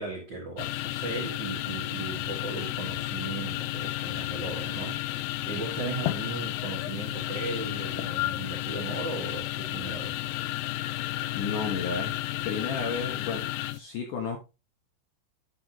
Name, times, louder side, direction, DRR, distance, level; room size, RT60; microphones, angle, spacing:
voice 1, 0.0-10.2, right 3 dB, 55° right, 1.2 m, -37 dB
sound 1, 0.6-13.8, left 16 dB, 85° left, 2.3 m, -32 dB
voice 2, 11.3-12.1 12.5-13.5 13.7-14.4, left 5 dB, 65° left, 2.1 m, -32 dB
10.5 x 5.8 x 2.9 m
omnidirectional pair, 5.1 m